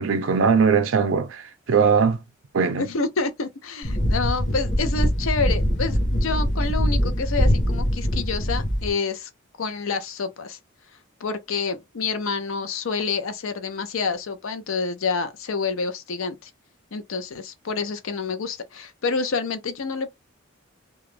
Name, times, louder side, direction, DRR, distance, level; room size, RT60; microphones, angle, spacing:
voice 1, 0.0-2.2 2.5-2.9, right 5 dB, 70° right, 0.4 m, -20 dB
voice 2, 2.8-9.3 9.6-10.6 11.2-16.5 16.9-20.1, left 4 dB, 80° left, 0.5 m, -28 dB
sound 1, 3.8-8.9, equal, 40° left, 0.8 m, -23 dB
2.3 x 2.1 x 3.1 m
head